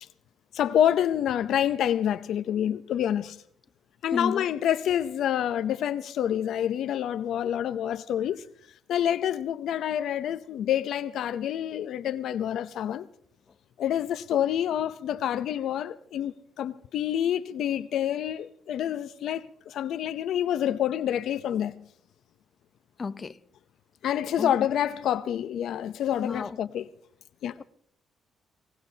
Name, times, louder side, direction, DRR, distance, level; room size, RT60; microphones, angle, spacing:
voice 1, 0.5-3.4 4.0-8.5 8.9-13.1 13.8-21.7 24.0-26.8 27.4-27.6, left 10 dB, 75° left, 0.6 m, -27 dB
voice 2, 4.1-4.5 23.0-23.4 24.4-24.5 26.2-26.6 27.6-27.7, left 5 dB, 35° left, 0.7 m, -32 dB
25.0 x 19.0 x 2.8 m
cardioid pair, 90°, 0 cm